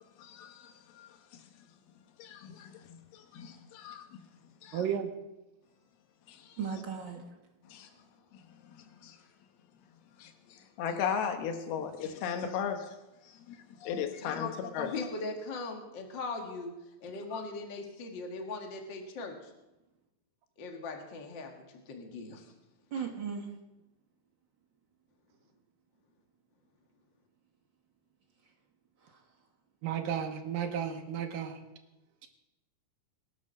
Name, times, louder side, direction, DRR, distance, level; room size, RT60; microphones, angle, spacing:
voice 1, 0.2-1.1 2.2-4.0 4.6-4.8 6.3-6.6 7.7-7.9 9.0-9.2 10.2-12.9 13.5-14.9 17.3-17.4, left 7 dB, 90° left, 6 dB, 3.1 m, -37 dB
voice 2, 4.7-5.1 29.8-31.6, right 8 dB, 75° right, 6 dB, 2.6 m, -33 dB
voice 3, 6.6-7.3 22.9-23.5 29.0-29.2, right 6 dB, 55° right, 2 dB, 1.3 m, -37 dB
voice 4, 14.8-16.7 17.0-19.4 20.6-21.5 21.9-22.4, left 3 dB, 45° left, 2 dB, 1.6 m, -39 dB
22.0 x 7.6 x 6.4 m, 0.98 s
omnidirectional pair, 4.3 m